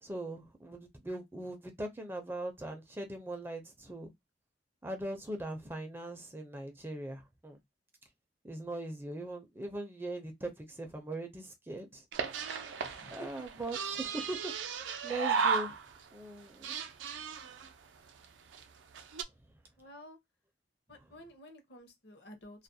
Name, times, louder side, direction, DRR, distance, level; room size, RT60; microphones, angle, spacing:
voice 1, 0.0-4.1 4.8-7.6 8.4-12.0 13.1-14.5 15.0-15.7 16.1-16.7, right 1 dB, 10° right, 0.4 m, -40 dB
sound 1, 12.1-16.1 16.4-17.7 18.2-18.3 18.5-18.6 18.9-19.2, right 6 dB, 85° right, 0.4 m, -35 dB
voice 2, 12.7-13.5 19.8-20.2 20.9-22.6, equal, 60° left, 0.7 m, -52 dB
2.3 x 2.0 x 2.6 m
head